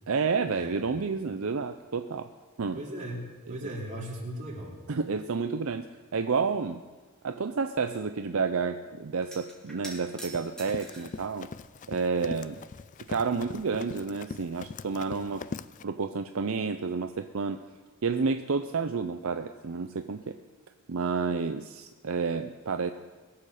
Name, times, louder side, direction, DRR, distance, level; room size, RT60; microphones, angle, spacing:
voice 1, 0.1-2.3 2.6-2.8 3.5-3.7 4.9-5.9 6.1-6.8 7.2-11.5 11.9-12.6 13.1-15.5 15.8-17.6 18.0-20.4 20.9-22.9, right 5 dB, 70° right, 8 dB, 0.6 m, -30 dB
voice 2, 2.7-4.8, right 1 dB, 35° right, -3 dB, 3.4 m, -38 dB
sound 1, 9.2-11.2 12.1-12.9 13.2-13.3 14.6-14.7 15.0-16.0 19.6-19.8 20.1-20.3, right 1 dB, 5° left, 2.7 m, -47 dB
Run, 10.1-15.8, left 4 dB, 35° left, 0.3 m, -41 dB
21.5 x 7.7 x 6.5 m, 1.3 s
head